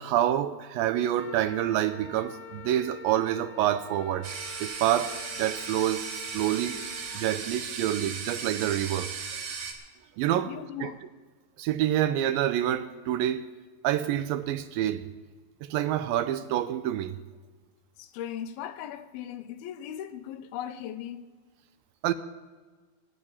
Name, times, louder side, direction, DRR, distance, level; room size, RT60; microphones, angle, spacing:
voice 1, 0.0-4.3 4.6-6.0 6.3-6.8 7.1-9.1 10.2-10.5 10.8-10.9 11.6-13.5 13.8-15.1 15.6-17.2 22.0-22.1, right 12 dB, 80° right, 2.2 m, -27 dB
Wind instrument woodwind instrument, 1.1-7.2, left 8 dB, 65° left, 1.9 m, -46 dB
sound 1, 4.2-9.7, right 5 dB, 60° right, 2.5 m, -37 dB
voice 2, 10.5-11.0 18.0-21.3, left 10 dB, 90° left, 2.6 m, -38 dB
23.5 x 10.5 x 4.2 m
omnidirectional pair, 4.4 m